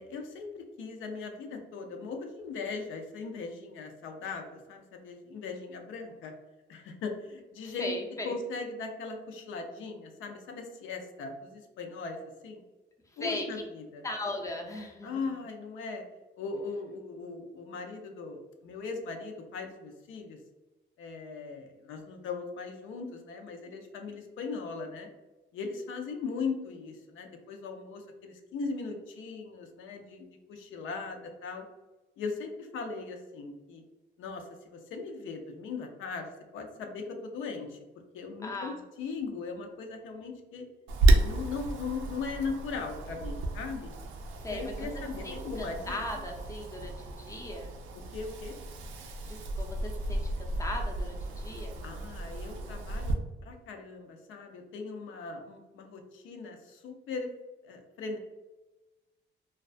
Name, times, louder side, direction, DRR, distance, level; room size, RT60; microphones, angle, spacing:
voice 1, 0.0-6.3 6.7-7.9 8.2-12.6 13.2-14.0 15.0-16.0 16.4-20.4 21.0-25.1 25.5-31.6 32.2-33.8 34.2-37.8 38.1-38.7 39.0-40.6 41.2-43.9 44.5-46.0 48.1-48.6 51.8-57.3 57.6-58.2, left 4 dB, 80° left, 4 dB, 0.5 m, -39 dB
voice 2, 7.6-8.3 13.1-13.5 14.0-15.3 38.4-38.8 44.4-47.8 49.0-51.8, left 1 dB, 15° left, 1 dB, 0.5 m, -38 dB
Wind, 40.9-53.1, right 2 dB, 80° right, 0.4 m, -31 dB
2.4 x 2.2 x 2.4 m, 1.1 s
cardioid pair, 90°, 20 cm